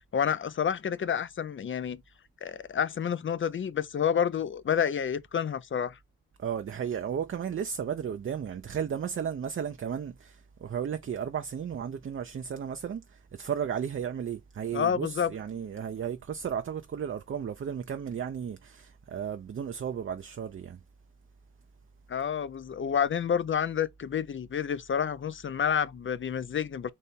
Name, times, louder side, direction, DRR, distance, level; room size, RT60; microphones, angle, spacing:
voice 1, 0.1-2.0 2.4-6.0 14.7-15.3 22.1-26.9, left 8 dB, 40° left, 0.4 m, -29 dB
voice 2, 6.4-20.8, right 8 dB, 40° right, 0.5 m, -34 dB
4.1 x 2.6 x 3.5 m
cardioid pair, 60°, 33 cm